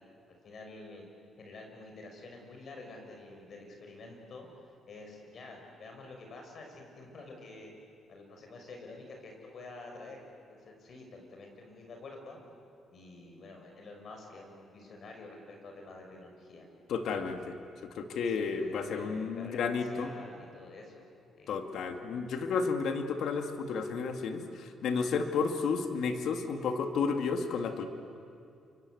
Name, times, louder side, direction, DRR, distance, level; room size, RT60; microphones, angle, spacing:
voice 1, 0.4-1.1 1.4-4.5 4.9-7.7 8.1-10.2 10.5-12.4 12.9-16.7 18.3-21.1 21.4-21.5, left 2 dB, 55° left, 2 dB, 6.6 m, -48 dB
voice 2, 16.9-17.5 17.9-20.1 21.5-27.9, left 5 dB, 70° left, 5 dB, 2.3 m, -32 dB
28.5 x 24.5 x 8.0 m, 2.5 s
cardioid pair, 90°, 0 cm